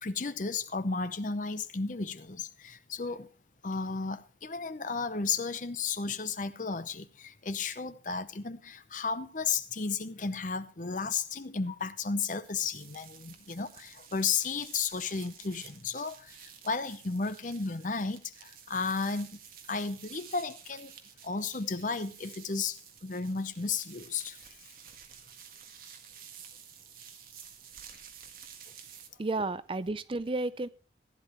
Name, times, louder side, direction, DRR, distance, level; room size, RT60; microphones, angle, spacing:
voice 1, 0.0-3.3 3.6-19.4 19.7-20.9 21.2-24.4, left 4 dB, 45° left, 0.8 m, -33 dB
sound 1, 12.4-29.1, right 8 dB, 50° right, 1.6 m, -51 dB
voice 2, 29.2-30.7, right 2 dB, 30° right, 0.4 m, -32 dB
15.5 x 10.5 x 3.1 m
head